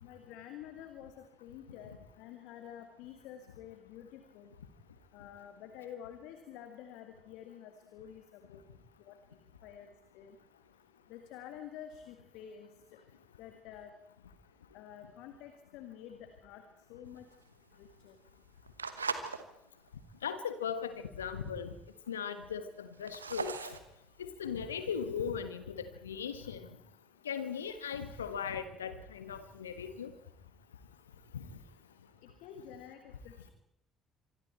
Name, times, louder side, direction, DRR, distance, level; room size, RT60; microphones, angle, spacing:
voice 1, 0.0-4.6 5.1-8.6 9.0-10.4 11.1-13.0 13.4-13.9 14.7-16.6 16.9-17.3 17.8-18.2 32.2-33.5, left 9 dB, 65° left, 7 dB, 2.0 m, -49 dB
sound 1, 17.1-19.4 19.9-20.2 20.7-20.8 21.0-21.1 21.3-21.9 22.3-24.9, right 5 dB, 85° right, 1.2 m, -40 dB
voice 2, 20.2-21.7 22.1-23.5 24.2-26.7 27.2-30.1 31.3-31.4, left 7 dB, 80° left, 11 dB, 1.4 m, -38 dB
25.5 x 25.0 x 4.4 m, 0.83 s
figure-of-eight pair, 50°, 0 cm